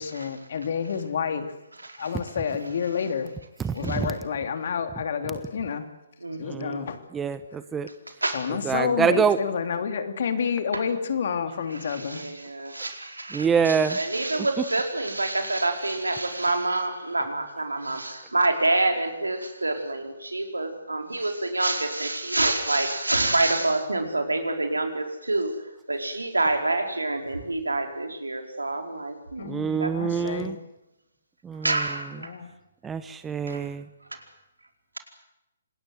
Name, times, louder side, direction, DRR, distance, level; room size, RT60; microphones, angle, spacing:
voice 1, 0.0-1.5 2.0-3.3 3.7-5.8 6.4-7.0 8.2-12.2 29.4-30.6 32.1-32.5, left 6 dB, 55° left, 7 dB, 3.0 m, -29 dB
voice 2, 3.6-4.1 6.4-7.9 8.5-9.4 13.3-14.0 14.4-14.5 29.4-30.6 31.4-32.0 32.8-33.9, right 6 dB, 10° right, 12 dB, 1.1 m, -26 dB
voice 3, 6.2-6.8 8.2-8.5 10.7-10.8 11.8-25.5 25.9-29.5 29.8-30.3 31.6-32.3 33.5-33.7, right 2 dB, 90° right, 4 dB, 4.7 m, -27 dB
27.0 x 20.0 x 8.0 m, 0.90 s
figure-of-eight pair, 135°, 0 cm